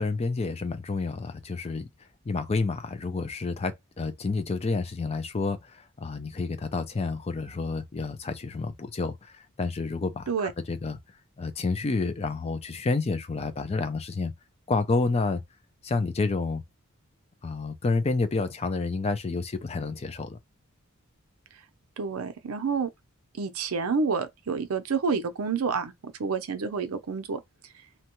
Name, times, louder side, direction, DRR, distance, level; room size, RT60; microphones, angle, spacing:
voice 1, 0.0-1.9 2.3-11.0 11.4-14.3 14.7-15.4 15.8-16.6 17.4-20.4, left 3 dB, 30° left, 0.4 m, -29 dB
voice 2, 22.0-22.9 23.4-25.9 26.2-27.4, right 5 dB, 80° right, 0.6 m, -28 dB
2.8 x 2.2 x 2.9 m
head